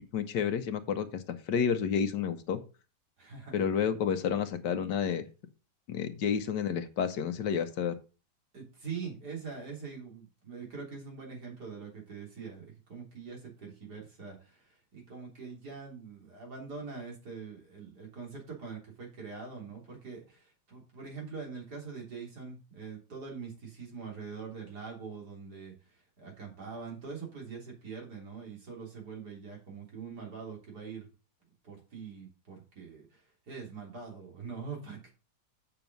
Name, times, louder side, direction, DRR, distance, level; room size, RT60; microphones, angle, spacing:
voice 1, 0.1-2.6 3.5-5.2 5.9-8.0, left 7 dB, 90° left, 9 dB, 1.6 m, -30 dB
voice 2, 3.2-3.9 8.5-31.1 31.6-35.1, right 5 dB, 70° right, -1 dB, 3.9 m, -43 dB
8.2 x 5.9 x 5.3 m, 0.33 s
omnidirectional pair, 1.8 m